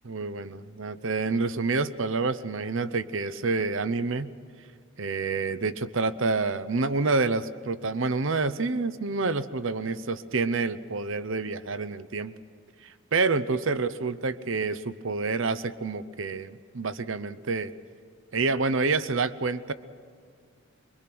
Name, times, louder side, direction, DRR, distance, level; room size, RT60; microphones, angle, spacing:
voice 1, 0.0-4.3 5.0-12.3 12.8-17.7 18.3-19.7, right 3 dB, 65° right, 14 dB, 0.8 m, -28 dB
24.0 x 23.5 x 6.1 m, 2.2 s
head